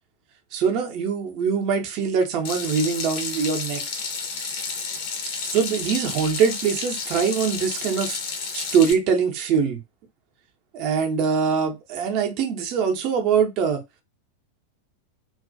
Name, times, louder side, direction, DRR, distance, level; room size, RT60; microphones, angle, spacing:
voice 1, 0.5-3.8 5.5-8.2 8.5-9.8 10.7-13.8, right 6 dB, 40° right, 0.5 m, -23 dB
Water tap faucet / Sink (filling or washing), 2.4-8.9, left 5 dB, 45° left, 0.5 m, -31 dB
2.3 x 2.1 x 2.5 m
figure-of-eight pair, 90°, 0 cm